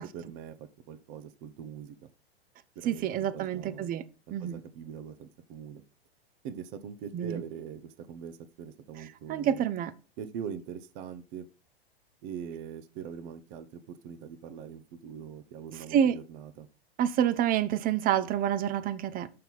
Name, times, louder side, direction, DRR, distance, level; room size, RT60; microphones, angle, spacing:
voice 1, 0.0-2.1 2.7-3.9 4.4-5.8 6.4-9.6 10.2-11.5 12.2-16.7, right 8 dB, 45° right, 1.1 m, -42 dB
voice 2, 2.9-4.0 4.3-4.6 7.1-7.4 9.3-9.9 15.9-16.2 17.0-19.3, right 9 dB, 30° right, 0.7 m, -27 dB
6.7 x 5.9 x 5.5 m
hypercardioid pair, 110°, 31 cm